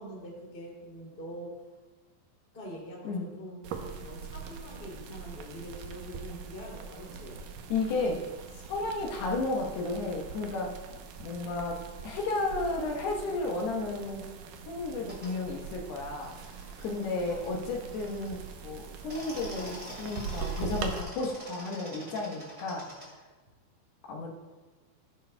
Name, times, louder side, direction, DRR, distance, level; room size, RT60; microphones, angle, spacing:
voice 1, 0.0-1.7 2.5-3.6 4.0-7.4, equal, 20° left, -4 dB, 2.0 m, -44 dB
sound 1, 3.6-21.0, right 6 dB, 85° right, 1.9 m, -42 dB
voice 2, 7.7-8.2 8.7-10.8 11.2-14.2 14.7-16.3 16.8-22.9 24.1-24.3, left 3 dB, 75° left, -2 dB, 3.1 m, -33 dB
sound 2, 15.0-15.3 16.1-18.5 18.9-23.1, equal, 20° right, 2.4 m, -46 dB
15.5 x 10.0 x 2.2 m, 1.3 s
omnidirectional pair, 4.9 m